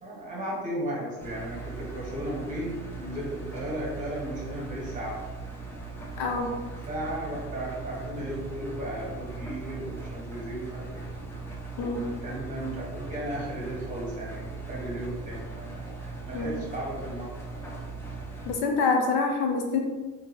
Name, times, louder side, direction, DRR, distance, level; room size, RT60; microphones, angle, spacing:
voice 1, 0.0-5.2 6.4-6.5 6.9-11.0 11.8-17.3, right 1 dB, 20° right, -5 dB, 1.2 m, -35 dB
Engine, 1.2-18.6, right 3 dB, 5° left, 0.3 m, -39 dB
voice 2, 6.2-6.5 11.8-12.0 16.3-16.6 18.5-19.8, left 4 dB, 85° left, 3 dB, 0.8 m, -26 dB
3.6 x 3.0 x 3.0 m, 1.2 s
cardioid pair, 160°, 35 cm